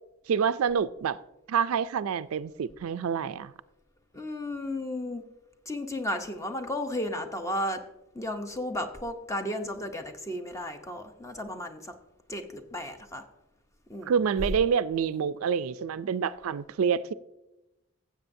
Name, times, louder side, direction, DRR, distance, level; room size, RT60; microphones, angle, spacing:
voice 1, 0.3-1.2 1.5-3.5 14.1-17.1, right 7 dB, 80° right, 0.4 m, -27 dB
voice 2, 4.1-5.2 5.7-7.8 8.1-11.8 12.3-13.2 13.9-14.1, left 1 dB, 15° left, 0.7 m, -34 dB
15.5 x 7.6 x 2.6 m
head